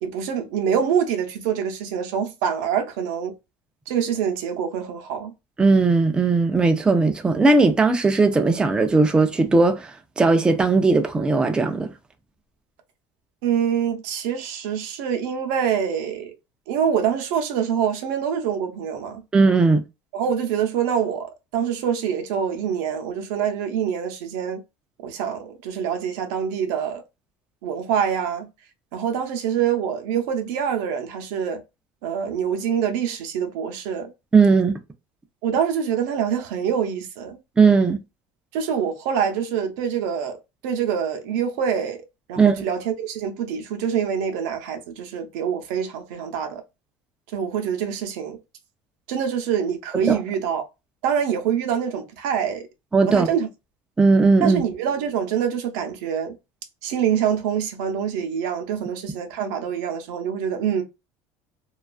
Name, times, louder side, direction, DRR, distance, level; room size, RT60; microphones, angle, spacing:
voice 1, 0.0-3.3 3.9-5.3 13.4-16.3 16.7-19.2 20.1-24.6 25.0-27.0 27.6-28.5 28.9-31.6 32.0-34.1 35.4-37.4 38.5-42.0 42.3-46.6 47.3-48.4 49.1-50.6 51.0-52.7 53.1-53.5 54.4-56.4 56.8-60.8, right 8 dB, 85° right, 0.6 m, -25 dB
voice 2, 5.6-9.9 10.2-11.9 19.3-19.8 34.3-34.8 37.6-38.0 42.4-42.6 50.1-50.2 52.9-53.3 54.0-54.6, right 3 dB, 10° right, 0.3 m, -17 dB
2.3 x 2.3 x 2.3 m
cardioid pair, 135°, 9 cm